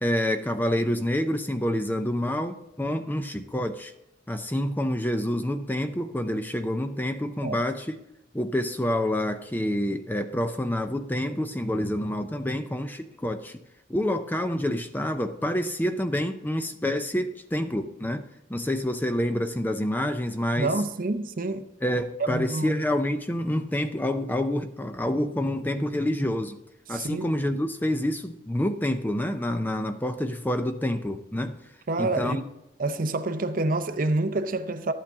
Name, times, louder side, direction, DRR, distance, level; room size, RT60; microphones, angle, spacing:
voice 1, 0.0-3.9 4.3-8.0 8.3-13.6 13.9-18.2 18.5-20.7 21.8-26.6 26.9-31.6 32.0-32.4, left 1 dB, 10° left, 0.5 m, -27 dB
voice 2, 20.6-21.6 22.2-22.8 26.9-27.3 31.9-32.5 32.8-34.9, right 2 dB, 45° right, 0.6 m, -27 dB
12.0 x 8.7 x 3.6 m
head